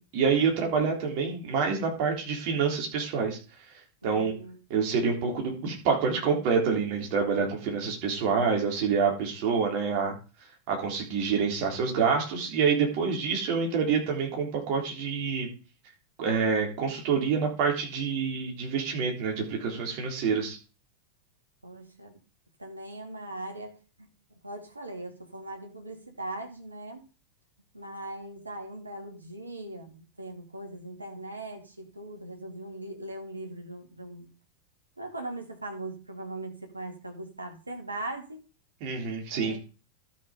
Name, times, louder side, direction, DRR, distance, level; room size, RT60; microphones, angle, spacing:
voice 1, 0.1-3.4 4.0-4.3 4.7-10.1 10.7-15.5 16.2-20.6 38.8-39.6, right 5 dB, 45° right, 1 dB, 3.7 m, -27 dB
voice 2, 4.0-4.6 21.6-22.2 22.6-23.8 24.4-27.0 27.7-34.3 35.0-38.4 39.3-39.6, right 1 dB, 80° right, 3 dB, 2.1 m, -40 dB
12.5 x 6.2 x 5.0 m, 0.34 s
figure-of-eight pair, 90°, 0 cm